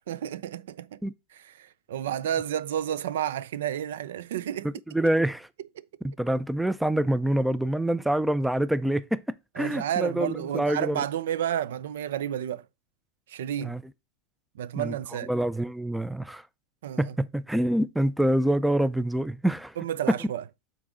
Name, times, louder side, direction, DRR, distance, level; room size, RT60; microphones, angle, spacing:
voice 1, 0.1-1.0 1.3-4.7 5.8-5.9 9.5-12.7 13.3-13.8 14.5-15.3 16.8-17.2 19.8-20.4, right 10 dB, 85° right, 0.4 m, -31 dB
voice 2, 4.9-5.4 6.0-9.2 9.6-11.0 13.6-13.8 14.7-14.9 15.3-16.5 17.0-19.8, right 1 dB, 5° right, 0.3 m, -26 dB
6.0 x 3.9 x 4.8 m
supercardioid pair, 130°, 0 cm